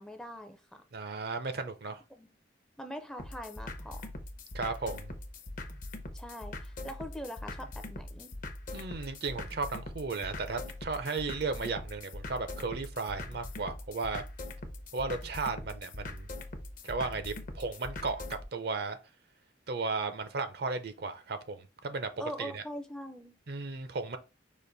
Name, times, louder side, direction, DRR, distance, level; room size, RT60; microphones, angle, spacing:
voice 1, 0.0-0.8 2.2-2.3 2.8-4.1 6.1-8.3 22.2-23.4, equal, 5° left, 0.5 m, -42 dB
voice 2, 0.9-2.0 4.5-5.2 8.7-14.2 14.9-16.3 16.8-19.0 19.7-22.1 22.4-22.6 23.5-24.2, right 4 dB, 60° right, 0.6 m, -35 dB
sound 1, 3.2-18.4, left 2 dB, 45° left, 0.7 m, -42 dB
5.1 x 2.5 x 3.9 m
head